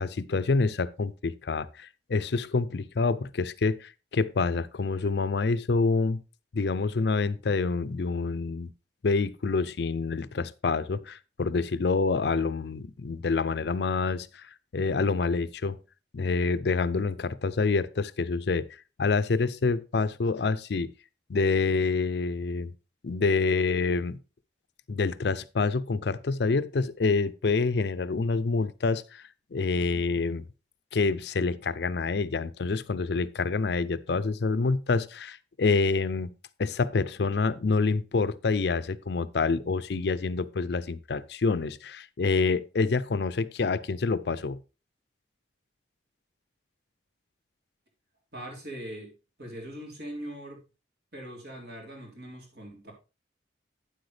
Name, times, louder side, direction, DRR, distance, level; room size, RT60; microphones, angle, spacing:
voice 1, 0.0-6.2 6.5-8.7 9.0-15.8 16.1-18.7 19.0-20.9 21.3-22.7 23.0-24.2 24.9-29.2 29.5-30.4 30.9-36.3 36.6-44.6, left 4 dB, 65° left, 0.5 m, -27 dB
voice 2, 48.3-49.1 49.4-50.6 51.1-52.9, right 1 dB, 60° right, 3.5 m, -41 dB
9.3 x 7.9 x 3.3 m
head